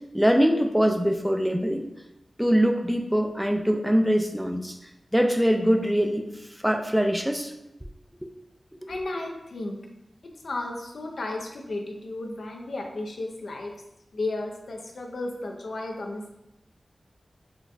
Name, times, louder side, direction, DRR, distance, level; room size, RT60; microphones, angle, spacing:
voice 1, 0.1-1.9 2.4-4.8 5.1-6.2 6.6-7.5, equal, 5° right, 4 dB, 0.3 m, -23 dB
voice 2, 8.9-9.8 10.4-13.7 14.1-16.4, left 2 dB, 80° left, 1 dB, 0.4 m, -33 dB
3.8 x 2.3 x 2.5 m, 0.89 s
wide cardioid pair, 60°, 0 cm